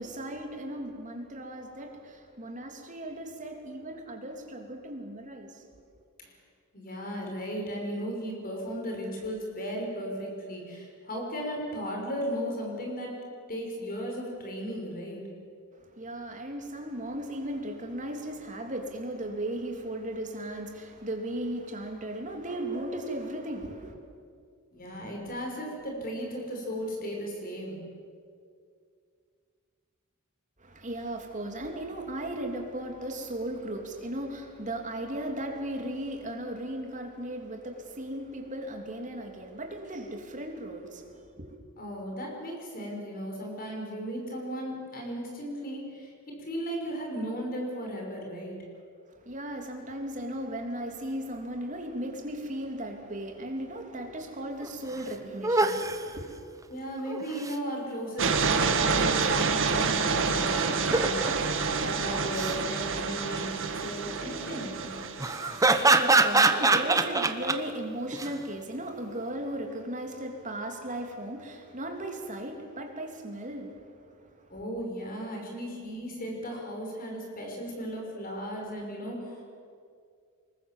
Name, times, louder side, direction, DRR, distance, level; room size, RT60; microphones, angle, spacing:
voice 1, 0.0-5.6 15.8-24.0 30.6-41.6 49.1-56.4 65.4-74.6, right 1 dB, 35° right, 3.1 m, -36 dB
voice 2, 6.7-13.1 13.5-15.3 24.7-27.8 41.8-48.6 56.7-65.1 74.5-79.4, equal, 40° left, 5.6 m, -36 dB
sound 1, 54.6-54.7 55.0-55.1 55.4-56.0 57.1-57.5 60.7-61.3 62.2-62.6 65.2-67.6 68.1-68.3, right 3 dB, 15° right, 1.1 m, -24 dB
sound 2, 58.2-65.8, right 5 dB, 60° right, 1.9 m, -28 dB
25.5 x 21.0 x 7.5 m
head